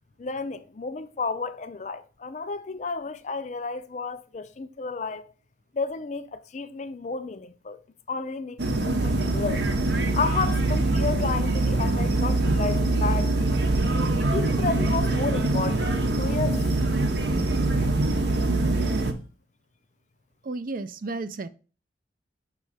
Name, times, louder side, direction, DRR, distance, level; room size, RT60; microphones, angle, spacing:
voice 1, 0.2-5.3 5.7-7.8 8.1-9.6 10.1-13.4 14.3-16.7 18.8-19.1, left 4 dB, 40° left, 0.4 m, -32 dB
sound 1, 8.6-19.1, right 2 dB, 65° right, 0.8 m, -24 dB
voice 2, 20.4-21.5, right 3 dB, 45° right, 0.4 m, -32 dB
6.2 x 3.3 x 4.9 m
head